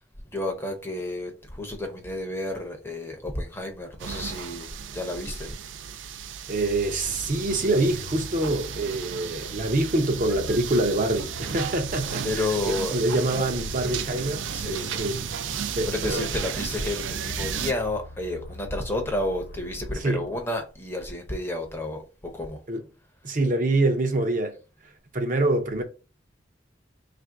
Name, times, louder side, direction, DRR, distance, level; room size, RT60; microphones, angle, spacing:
voice 1, 0.3-5.6 12.2-13.2 14.5-14.9 15.8-22.6, left 2 dB, 10° left, 0.6 m, -31 dB
sound 1, 4.0-17.7, right 8 dB, 85° right, 0.4 m, -34 dB
voice 2, 6.5-12.5 12.9-15.1 15.7-16.3 19.9-20.2 22.7-22.8 23.2-24.6 25.1-25.8, right 2 dB, 45° right, 0.6 m, -25 dB
sound 2, 6.6-20.7, left 1 dB, 70° left, 0.9 m, -43 dB
3.3 x 2.5 x 4.5 m
head